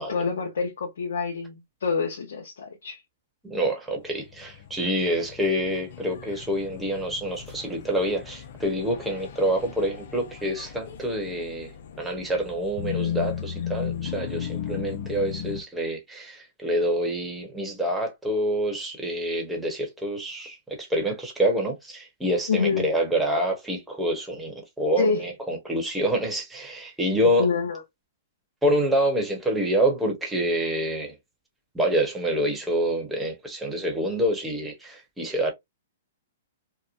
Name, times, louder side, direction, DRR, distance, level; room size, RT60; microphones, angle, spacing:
voice 1, 0.0-3.0 22.5-22.9 25.0-25.3 27.2-27.8, left 5 dB, 80° left, 0.9 m, -27 dB
voice 2, 3.4-11.7 12.0-20.6 20.9-27.5 28.6-31.1 31.7-35.5, right 1 dB, 5° right, 1.0 m, -27 dB
sound 1, 4.1-15.6, left 9 dB, 60° left, 0.5 m, -36 dB
2.9 x 2.1 x 2.5 m
hypercardioid pair, 135°, 0 cm